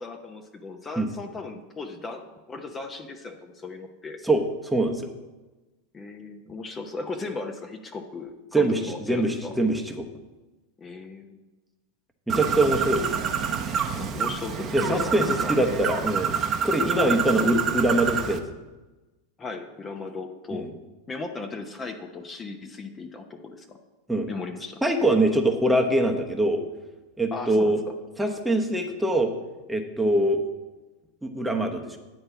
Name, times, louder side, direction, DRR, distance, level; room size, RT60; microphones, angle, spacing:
voice 1, 0.0-4.2 5.9-9.6 10.8-11.4 14.0-15.5 17.0-17.5 19.4-20.7 21.1-23.8 24.3-24.8 27.3-27.9, left 3 dB, 20° left, 5 dB, 0.9 m, -37 dB
voice 2, 4.2-5.1 8.5-10.1 12.3-13.1 14.7-16.4 16.6-18.4 20.5-20.7 24.1-24.3 24.8-26.6 27.2-27.8 28.2-29.3 29.7-30.4 31.2-32.0, right 1 dB, 5° right, 3 dB, 1.0 m, -23 dB
Bird, 12.3-18.4, right 7 dB, 30° right, 0.9 m, -27 dB
9.9 x 4.4 x 6.9 m, 1.1 s
hypercardioid pair, 90°, 0 cm